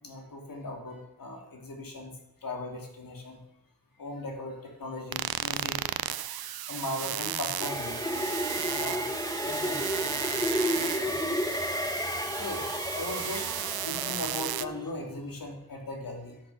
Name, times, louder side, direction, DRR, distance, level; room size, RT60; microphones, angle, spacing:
voice 1, 0.0-3.4 4.0-5.8 6.7-8.3 8.7-10.0 10.3-10.6 10.9-11.2 11.5-11.8 12.3-16.4, left 2 dB, 65° left, 2 dB, 2.9 m, -39 dB
sound 1, 5.1-14.7, right 12 dB, 75° right, 0.6 m, -34 dB
sound 2, 7.6-14.9, left 1 dB, 10° left, 1.1 m, -32 dB
10.5 x 8.3 x 5.7 m, 0.85 s
cardioid pair, 55°, 37 cm